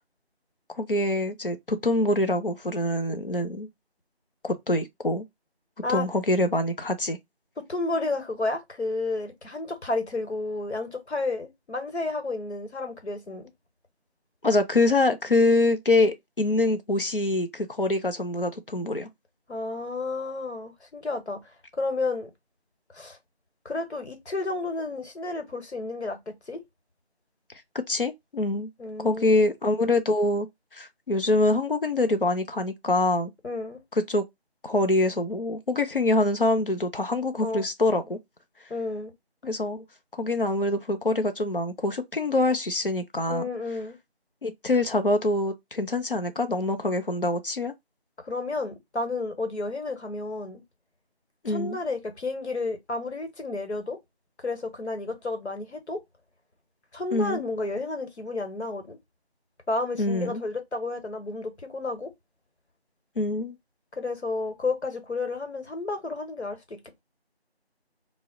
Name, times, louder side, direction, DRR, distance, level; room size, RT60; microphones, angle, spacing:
voice 1, 0.8-3.7 4.4-5.2 5.9-7.2 14.4-19.1 27.9-28.7 29.0-30.5 30.7-33.3 34.1-34.2 34.6-38.2 39.4-39.8 40.1-43.4 44.4-47.7 51.4-51.8 57.1-57.4 60.0-60.4 63.2-63.6, left 2 dB, 55° left, 0.5 m, -25 dB
voice 2, 7.7-13.5 19.5-22.3 22.9-23.2 23.6-26.6 28.8-29.4 33.4-33.8 37.4-37.6 38.7-39.1 43.3-43.9 48.2-50.6 51.5-54.0 54.4-56.0 56.9-59.0 59.7-62.1 64.0-67.0, left 3 dB, 85° left, 1.0 m, -31 dB
2.2 x 2.0 x 3.6 m
figure-of-eight pair, 175°, 32 cm